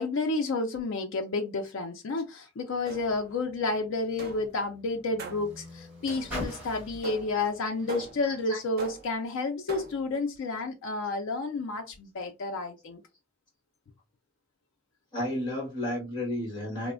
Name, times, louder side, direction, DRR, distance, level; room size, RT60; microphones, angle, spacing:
voice 1, 0.0-13.0, left 3 dB, 90° left, 0.4 m, -31 dB
Car, 2.7-9.3 10.1-10.2, equal, 10° right, 1.5 m, -45 dB
sound 1, 2.9-3.4 4.2-4.6 5.2-5.6 6.1-6.5 7.0-7.4 7.9-8.4 8.8-9.2 9.7-10.1, right 4 dB, 50° right, 0.5 m, -42 dB
voice 2, 8.2-8.6 15.1-16.9, left 1 dB, 25° left, 1.5 m, -32 dB
3.1 x 2.0 x 2.4 m
head